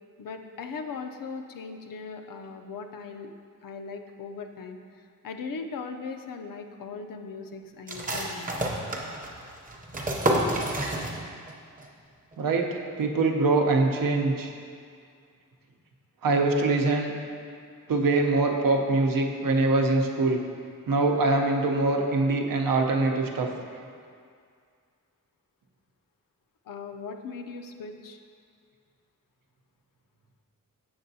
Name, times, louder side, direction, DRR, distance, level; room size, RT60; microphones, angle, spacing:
voice 1, 0.2-3.3 3.6-8.5 26.7-28.2, left 4 dB, 80° left, 5 dB, 0.5 m, -39 dB
sound 1, 7.9-11.5 11.8-11.9 12.3-12.8, right 1 dB, 25° right, 0.6 m, -29 dB
voice 2, 12.4-14.5 16.2-17.1 17.9-20.4 20.9-23.5, right 3 dB, 90° right, 2 dB, 0.7 m, -23 dB
7.8 x 6.7 x 2.7 m, 2.2 s
wide cardioid pair, 170°, 33 cm